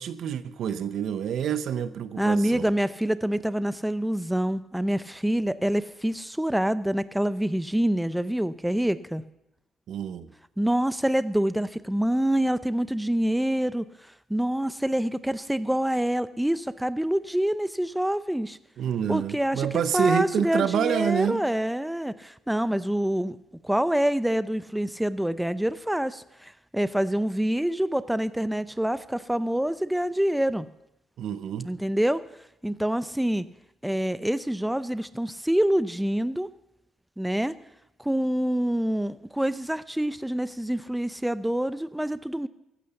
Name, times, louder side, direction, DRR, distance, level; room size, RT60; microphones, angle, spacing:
voice 1, 0.0-2.7 9.9-10.3 18.8-21.4 31.2-31.7, right 8 dB, 70° right, 13 dB, 0.9 m, -27 dB
voice 2, 2.2-9.2 10.6-13.8 14.3-18.6 19.1-19.7 19.9-23.4 23.6-30.7 31.6-32.2 32.6-33.5 33.8-36.5 37.2-37.5 38.0-42.5, right 1 dB, 5° right, 14 dB, 0.6 m, -26 dB
15.0 x 11.5 x 7.1 m, 0.86 s
cardioid pair, 90°, 0 cm